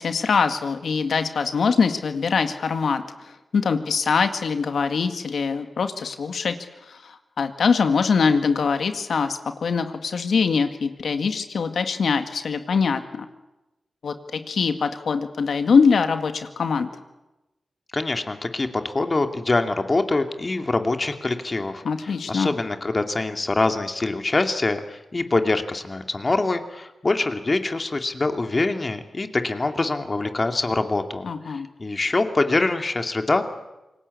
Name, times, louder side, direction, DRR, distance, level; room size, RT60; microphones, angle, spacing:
voice 1, 0.0-3.0 3.5-6.6 6.9-13.3 14.0-16.9 21.8-22.5 31.2-31.7, left 5 dB, 75° left, 8 dB, 1.9 m, -23 dB
voice 2, 17.9-33.4, left 2 dB, 40° left, 6 dB, 2.5 m, -24 dB
27.5 x 19.0 x 8.4 m, 1.0 s
cardioid pair, 50°, 0 cm